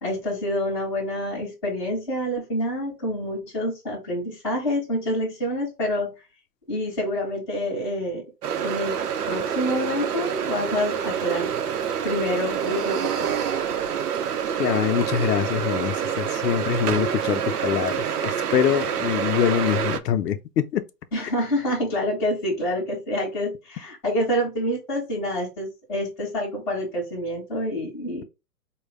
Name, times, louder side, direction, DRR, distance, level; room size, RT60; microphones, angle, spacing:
voice 1, 0.0-6.1 6.7-8.2 8.6-9.0 9.3-11.5 12.0-13.3 21.1-28.2, equal, 5° left, 0.8 m, -27 dB
sound 1, 8.4-20.0, right 8 dB, 65° right, 0.7 m, -27 dB
voice 2, 14.6-20.8, left 10 dB, 75° left, 0.6 m, -24 dB
4.5 x 2.2 x 3.3 m
hypercardioid pair, 165°, 49 cm